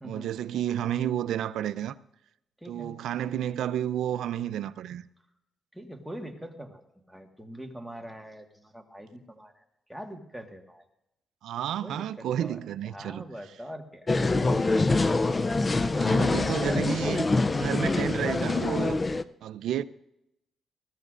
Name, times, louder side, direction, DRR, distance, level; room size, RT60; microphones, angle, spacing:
voice 1, 0.0-1.9 2.7-5.0 11.4-13.2 14.3-14.6 16.1-19.8, right 10 dB, 85° right, 0.5 m, -31 dB
voice 2, 2.6-2.9 5.7-6.8 7.1-9.6 9.9-10.8 11.8-14.1 15.9-16.3, equal, ahead, 1.5 m, -43 dB
sound 1, 14.1-19.2, left 3 dB, 25° left, 0.4 m, -25 dB
20.5 x 14.5 x 2.5 m
cardioid pair, 115°, 0 cm